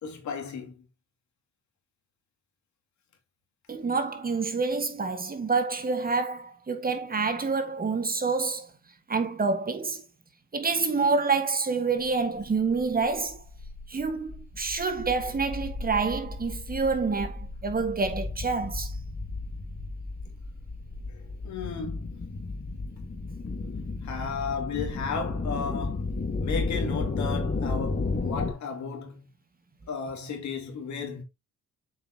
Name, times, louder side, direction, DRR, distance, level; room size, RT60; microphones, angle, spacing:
voice 1, 0.0-0.7 21.1-22.2 24.0-29.3 29.9-31.2, left 5 dB, 70° left, 2.6 m, -34 dB
voice 2, 3.7-8.7 9.1-10.0 10.5-13.4 13.9-18.9, right 4 dB, 30° right, 1.6 m, -27 dB
sound 1, 12.0-12.1 12.4-28.5, left 3 dB, 40° left, 2.3 m, -33 dB
7.6 x 5.6 x 2.8 m
cardioid pair, 90°, 30 cm